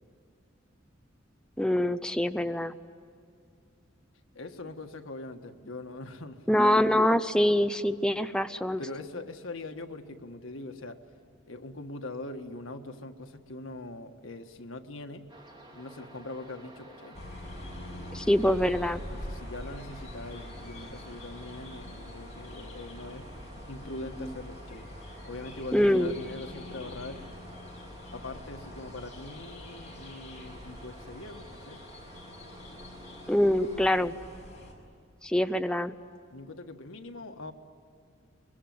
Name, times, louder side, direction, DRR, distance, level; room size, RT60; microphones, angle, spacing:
voice 1, 1.6-2.7 6.5-8.8 18.1-19.0 25.7-26.1 33.3-34.1 35.2-35.9, left 1 dB, 5° left, 9 dB, 0.6 m, -24 dB
voice 2, 4.3-6.5 8.8-11.0 11.4-15.3 15.7-17.2 19.1-23.3 23.7-24.9 25.2-27.3 28.1-31.8 36.3-37.5, left 2 dB, 90° left, 6 dB, 1.6 m, -42 dB
sound 1, 15.3-33.9, right 2 dB, 25° right, 2.8 m, -51 dB
sound 2, 17.1-34.7, left 1 dB, 35° left, 5.5 m, -44 dB
24.0 x 22.0 x 9.4 m, 2.3 s
head